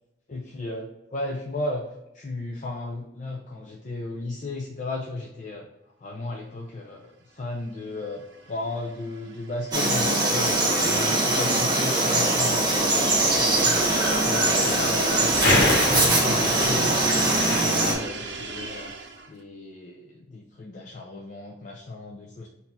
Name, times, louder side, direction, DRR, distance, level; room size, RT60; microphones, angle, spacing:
voice 1, 0.3-5.7 6.0-8.2 8.5-17.0 17.5-18.9 19.3-22.5, left 2 dB, 45° left, -1 dB, 0.5 m, -35 dB
sound 1, 7.5-19.4, right 3 dB, 85° right, 0.6 m, -38 dB
Frog, 9.7-17.9, right 2 dB, 25° right, 1.2 m, -22 dB
sound 2, 13.6-18.1, left 2 dB, 85° left, 1.3 m, -28 dB
4.1 x 2.7 x 4.2 m, 0.94 s
head